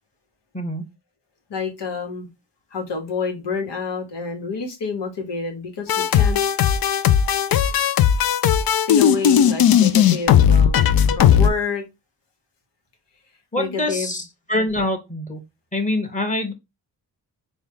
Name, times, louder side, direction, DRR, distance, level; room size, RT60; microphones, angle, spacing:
voice 1, 0.5-0.8 13.5-14.2 14.5-15.4 15.7-16.5, left 1 dB, 20° left, 0.9 m, -24 dB
voice 2, 1.5-2.3 2.7-6.4 8.7-11.8 13.5-14.1, left 4 dB, 90° left, 1.2 m, -28 dB
sound 1, 5.9-11.5, left 9 dB, 60° left, 0.5 m, -16 dB
4.2 x 2.2 x 3.5 m
cardioid pair, 70°, 41 cm